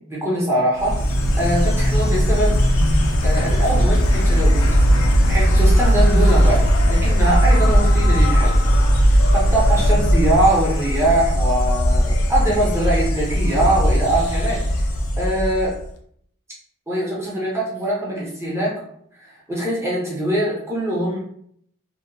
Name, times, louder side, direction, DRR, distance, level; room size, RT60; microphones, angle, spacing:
voice 1, 0.1-1.0 1.4-2.7 3.2-4.7 5.3-8.5 9.1-14.6 15.2-15.7 16.9-18.7 19.2-21.2, right 1 dB, 10° right, -5 dB, 0.6 m, -22 dB
Insect, 0.8-15.9, equal, 70° left, 0.4 m, -17 dB
2.8 x 2.0 x 2.5 m, 0.67 s
head